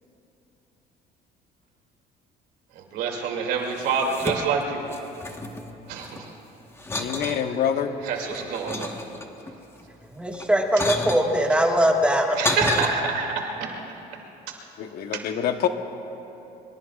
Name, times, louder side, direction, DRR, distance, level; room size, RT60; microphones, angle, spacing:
voice 1, 2.7-4.8 5.9-6.3 6.9-7.4 8.0-9.0 12.3-13.8, right 5 dB, 90° right, 1 dB, 2.6 m, -27 dB
sound 1, 3.6-4.6 4.9-6.3 6.8-7.4 8.0-9.5 10.3-11.3 12.0-12.9, left 2 dB, 15° left, 1.3 m, -31 dB
voice 2, 6.9-7.9 14.8-15.7, left 9 dB, 65° left, 7 dB, 1.1 m, -26 dB
voice 3, 10.1-12.4, equal, 5° right, 1 dB, 1.7 m, -21 dB
24.5 x 23.5 x 2.4 m, 3.0 s
cardioid pair, 110°, 17 cm